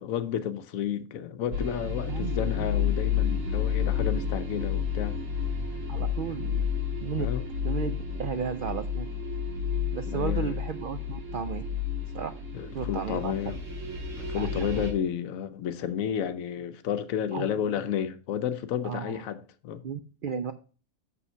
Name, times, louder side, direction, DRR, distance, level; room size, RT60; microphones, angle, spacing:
voice 1, 0.0-5.2 7.2-7.4 10.1-10.6 12.5-13.6 14.2-19.8, left 9 dB, 80° left, 1.1 m, -31 dB
sound 1, 1.5-14.9, left 6 dB, 65° right, 1.9 m, -30 dB
voice 2, 2.1-2.7 5.9-6.7 7.0-7.3 7.6-9.1 9.9-11.6 12.1-12.3 12.7-13.3 14.4-14.9 17.3-17.5 18.8-19.2 19.8-20.5, right 6 dB, 90° right, 0.4 m, -34 dB
6.3 x 5.6 x 5.5 m
omnidirectional pair, 1.5 m